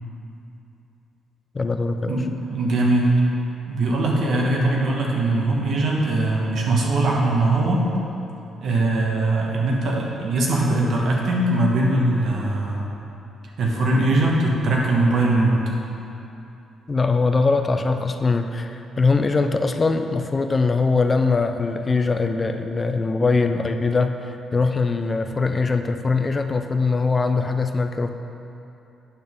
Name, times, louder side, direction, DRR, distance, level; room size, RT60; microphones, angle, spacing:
voice 1, 1.5-2.2 16.9-28.1, left 4 dB, 30° left, 7 dB, 0.5 m, -22 dB
voice 2, 2.1-3.1 3.7-7.8 8.6-12.9 13.6-15.6, right 2 dB, 65° right, -2 dB, 1.3 m, -21 dB
8.8 x 5.9 x 3.6 m, 2.8 s
cardioid pair, 90°, 0 cm